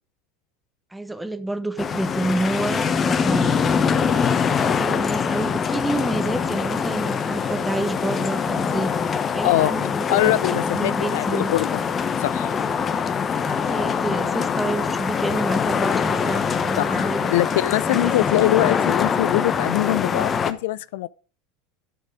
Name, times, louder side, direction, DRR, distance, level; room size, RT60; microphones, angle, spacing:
voice 1, 0.9-3.6 4.6-9.0 9.3-11.5 12.5-12.6 13.4-18.1, right 2 dB, 5° right, 1.1 m, -29 dB
sound 1, 1.8-20.5, left 6 dB, 30° left, 1.1 m, -23 dB
voice 2, 9.4-9.8 10.1-11.9 12.2-12.6 16.8-21.1, left 16 dB, 70° left, 0.4 m, -23 dB
11.0 x 6.6 x 4.9 m
hypercardioid pair, 90°, 0 cm